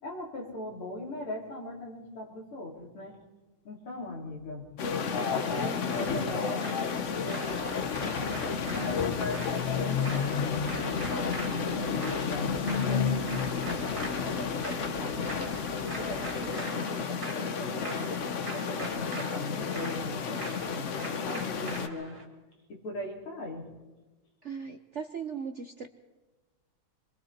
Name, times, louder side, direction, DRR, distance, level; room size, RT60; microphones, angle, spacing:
voice 1, 0.0-3.2 3.6-4.7 5.3-6.8 7.2-10.7 11.1-13.3 13.7-15.6 16.0-18.2 18.5-22.2 22.7-23.7, left 1 dB, 90° left, -1 dB, 4.7 m, -40 dB
sound 1, 4.8-21.9, left 6 dB, 50° left, 0.9 m, -31 dB
sound 2, 5.2-22.2, right 1 dB, 35° right, 3.7 m, -42 dB
sound 3, 7.5-16.5, left 2 dB, 5° right, 2.0 m, -49 dB
voice 2, 24.4-25.9, right 6 dB, 55° right, 7 dB, 0.8 m, -38 dB
26.5 x 23.5 x 4.4 m, 1.2 s
omnidirectional pair, 2.3 m